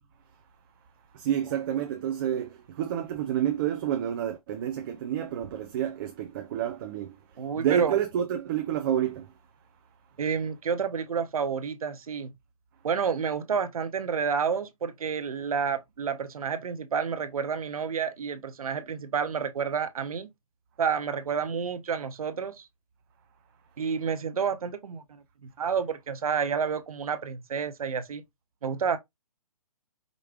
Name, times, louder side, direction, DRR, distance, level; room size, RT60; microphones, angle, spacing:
voice 1, 1.1-7.2 7.5-9.3, right 10 dB, 35° right, 0.6 m, -29 dB
voice 2, 7.4-8.0 10.2-12.3 12.8-20.3 20.8-22.7 23.8-28.2 28.6-29.0, right 6 dB, 70° right, 0.8 m, -30 dB
5.1 x 3.2 x 2.4 m
hypercardioid pair, 140°, 19 cm